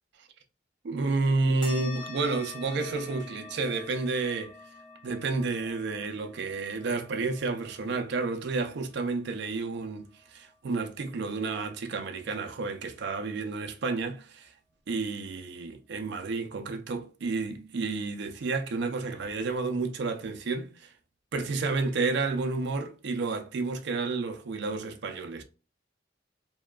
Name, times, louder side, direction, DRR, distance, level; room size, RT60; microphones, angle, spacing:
voice 1, 0.8-4.5 5.0-14.5 14.9-20.9 21.3-25.4, right 3 dB, 60° right, 0.4 m, -31 dB
sound 1, 1.6-10.5, left 3 dB, 25° left, 0.7 m, -47 dB
2.7 x 2.2 x 2.3 m
head